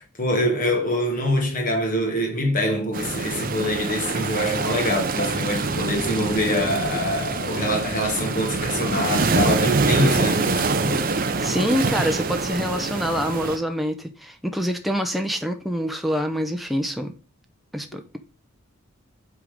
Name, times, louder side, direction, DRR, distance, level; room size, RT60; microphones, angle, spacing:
voice 1, 0.0-11.1, left 1 dB, 35° left, 1.2 m, -25 dB
sound 1, 2.9-13.6, right 3 dB, 40° right, 0.7 m, -25 dB
voice 2, 11.4-17.1 17.7-18.2, equal, ahead, 0.6 m, -26 dB
8.0 x 3.6 x 5.2 m
head